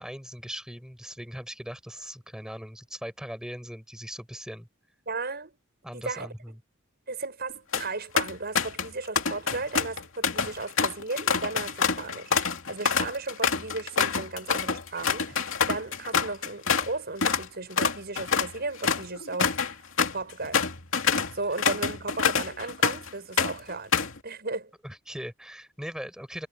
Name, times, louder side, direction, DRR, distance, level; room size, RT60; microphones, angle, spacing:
voice 1, 0.0-4.7 5.8-6.5 24.8-26.5, equal, 5° right, 5.8 m, -39 dB
voice 2, 5.1-5.6 5.9-6.3 7.1-19.7 20.1-20.6 21.3-23.9 24.2-24.7, right 3 dB, 50° right, 7.4 m, -35 dB
sound 1, 7.5-7.9 8.2-8.9 9.2-16.9 17.2-17.5 17.8-23.1 23.4-24.2, left 6 dB, 70° left, 2.7 m, -26 dB
head